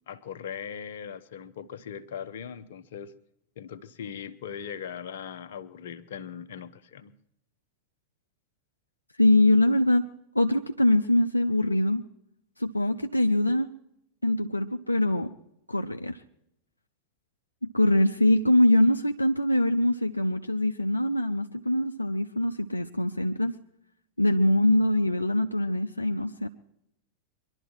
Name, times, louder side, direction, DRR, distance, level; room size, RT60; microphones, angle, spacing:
voice 1, 0.0-3.1 3.6-7.1, left 8 dB, 60° left, 11 dB, 0.8 m, -39 dB
voice 2, 9.2-12.0 12.6-13.7 14.2-15.3 15.7-16.2 17.7-23.6 24.2-26.5, left 1 dB, 85° left, 6 dB, 0.5 m, -23 dB
23.5 x 11.5 x 4.6 m, 0.80 s
figure-of-eight pair, 90°, 0 cm